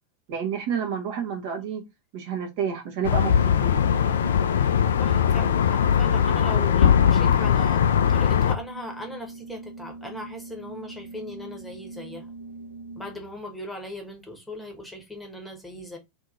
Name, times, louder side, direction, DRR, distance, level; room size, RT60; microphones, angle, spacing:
voice 1, 0.3-1.8 2.1-3.3 3.6-3.8, right 7 dB, 45° right, 0.8 m, -29 dB
sound 1, 3.0-8.6, left 8 dB, 65° left, 0.3 m, -20 dB
Organ, 3.2-13.4, right 2 dB, 65° right, 0.4 m, -42 dB
voice 2, 5.0-12.3 12.9-16.0, left 1 dB, 5° left, 1.0 m, -38 dB
2.7 x 2.7 x 3.6 m
figure-of-eight pair, 90°, 0 cm